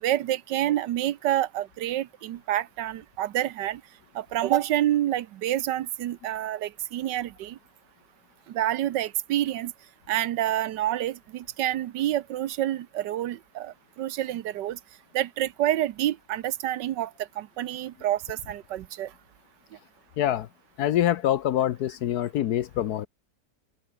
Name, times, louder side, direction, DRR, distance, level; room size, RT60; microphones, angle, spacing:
voice 1, 0.0-3.8 4.1-7.6 8.5-9.7 10.1-14.8 15.1-17.1 17.4-19.1, right 13 dB, 80° right, 1.4 m, -28 dB
voice 2, 20.2-20.5 20.8-23.1, left 11 dB, 65° left, 1.2 m, -25 dB
open air
omnidirectional pair, 1.9 m